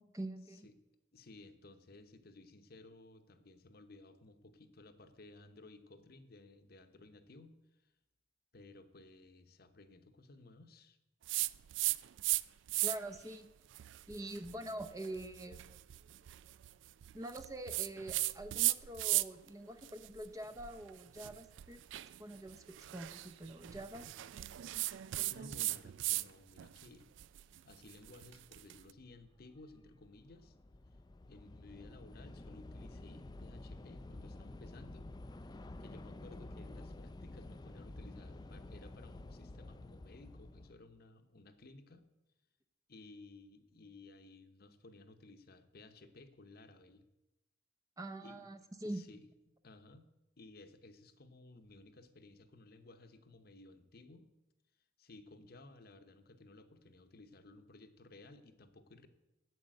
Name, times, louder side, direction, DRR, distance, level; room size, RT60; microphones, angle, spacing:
voice 1, 0.1-0.7 12.8-13.5 14.1-15.6 17.1-21.8 22.2-22.6 22.9-24.1 48.0-49.0, right 1 dB, 15° right, 9 dB, 0.6 m, -45 dB
voice 2, 1.1-7.9 8.5-11.0 25.3-27.1 27.3-30.6 31.2-35.1 35.4-42.1 42.9-47.0 48.2-48.5 48.8-49.3 49.6-50.1 50.4-54.3 55.0-59.1, left 2 dB, 50° left, 9 dB, 0.9 m, -57 dB
sound 1, 11.3-12.4 12.7-13.2 13.7-19.5 19.8-26.3 26.6-28.8, right 18 dB, 65° right, 0.3 m, -37 dB
Train / Subway metro underground, 26.7-26.8 27.6-27.9 28.2-40.7, left 2 dB, 20° left, 0.4 m, -50 dB
9.1 x 8.1 x 7.6 m, 0.97 s
head